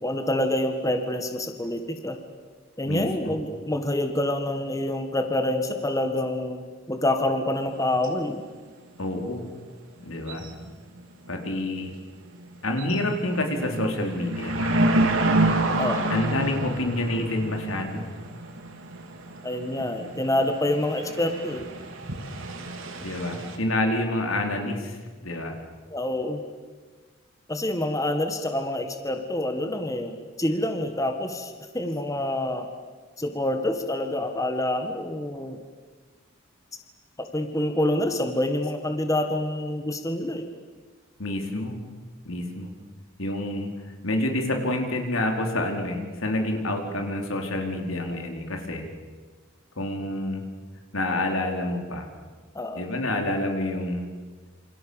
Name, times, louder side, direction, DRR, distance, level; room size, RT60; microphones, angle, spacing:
voice 1, 0.0-2.2 2.8-8.4 15.8-16.1 19.4-21.6 25.9-26.4 27.5-32.7 33.2-35.6 37.2-40.5 52.5-52.8, left 1 dB, 15° left, 6 dB, 1.7 m, -27 dB
voice 2, 2.8-3.4 9.0-9.4 10.0-10.5 11.3-11.9 12.6-14.7 16.1-18.0 23.0-25.6 41.2-41.8 42.2-42.7 43.2-43.7 44.0-48.9 49.8-50.4 50.9-52.1 52.7-54.1, left 1 dB, 80° left, 3 dB, 4.5 m, -28 dB
sound 1, 7.7-7.8 8.0-8.1 10.3-10.7 11.0-11.1 11.6-11.9 12.3-12.4 12.7-23.6, right 2 dB, 70° right, 3.4 m, -28 dB
28.5 x 27.5 x 7.2 m, 1.4 s
head